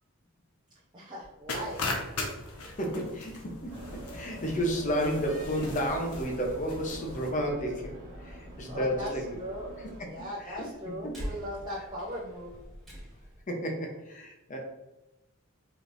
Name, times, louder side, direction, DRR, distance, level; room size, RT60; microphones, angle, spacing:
voice 1, 0.9-1.8 8.7-9.1 9.4-12.6, equal, 20° right, -7 dB, 0.7 m, -38 dB
sound 1, 1.5-7.3, left 2 dB, 85° left, 0.8 m, -39 dB
voice 2, 2.7-9.4 9.8-9.9 10.4-10.7 11.0-11.2 13.5-14.6, equal, 35° left, 1 dB, 0.7 m, -32 dB
sound 2, 3.7-10.0, equal, 40° right, 1.3 m, -45 dB
Slam, 5.0-13.4, equal, ahead, 1.5 m, -47 dB
4.9 x 3.1 x 2.6 m, 1.0 s
head